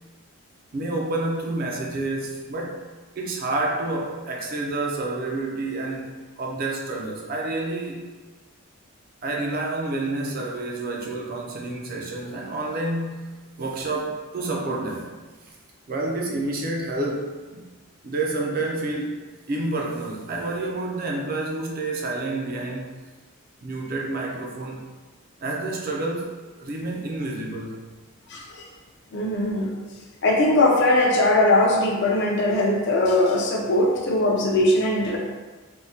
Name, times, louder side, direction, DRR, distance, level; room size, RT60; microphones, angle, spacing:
voice 1, 0.7-2.8 3.2-8.0 9.2-15.1 15.5-15.6 15.9-17.6 18.0-19.1 19.5-22.9 23.6-24.8 25.4-27.9, right 2 dB, 40° right, -1 dB, 0.4 m, -29 dB
voice 2, 28.3-28.6 29.1-29.7 30.2-35.2, left 1 dB, 50° left, -1 dB, 0.4 m, -20 dB
3.5 x 2.1 x 2.8 m, 1.3 s
head